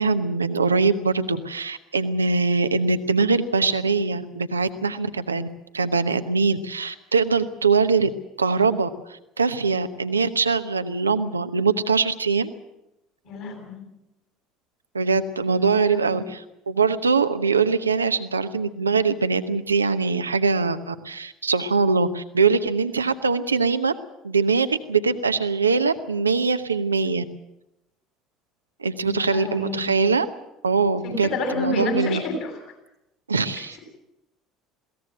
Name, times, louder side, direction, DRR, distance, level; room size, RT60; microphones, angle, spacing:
voice 1, 0.0-5.5 5.7-8.1 8.4-12.5 14.9-23.9 24.2-27.2 28.8-30.3 30.6-32.2 33.3-33.8, right 4 dB, 85° right, 10 dB, 0.9 m, -22 dB
voice 2, 13.2-13.8 15.7-16.2 29.0-29.8 31.0-32.6, left 2 dB, 60° left, 3 dB, 7.5 m, -29 dB
21.5 x 17.5 x 7.9 m, 0.89 s
figure-of-eight pair, 60°, 0 cm